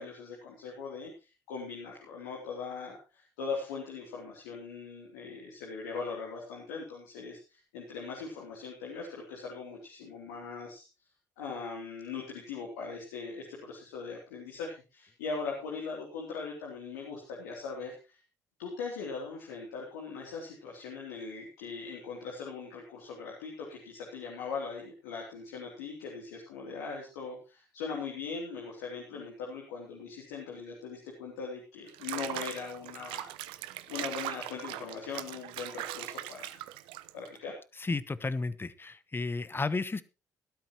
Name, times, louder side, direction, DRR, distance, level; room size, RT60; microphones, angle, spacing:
voice 1, 0.0-10.8 11.4-17.9 18.6-36.6 37.1-37.6, left 5 dB, 80° left, -2 dB, 3.2 m, -40 dB
Water / Bathtub (filling or washing), 31.9-37.4, right 15 dB, 75° right, 0.7 m, -40 dB
voice 2, 37.8-40.0, left 3 dB, 25° left, 16 dB, 1.1 m, -33 dB
17.0 x 12.5 x 3.1 m, 0.30 s
hypercardioid pair, 50°, 9 cm